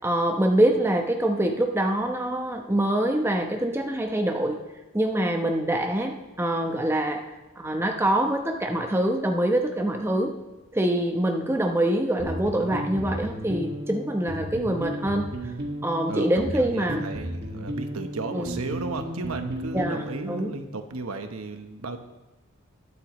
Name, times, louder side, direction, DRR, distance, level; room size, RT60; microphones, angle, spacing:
voice 1, 0.0-4.6 4.9-7.2 7.6-10.3 10.7-15.3 15.8-17.1 18.3-18.6 19.7-20.5, right 1 dB, 10° right, 3 dB, 0.9 m, -25 dB
sound 1, 12.2-20.6, right 1 dB, 50° right, 1.9 m, -34 dB
voice 2, 16.1-22.0, right 3 dB, 85° right, 7 dB, 1.1 m, -34 dB
21.0 x 8.2 x 3.1 m, 1.1 s
head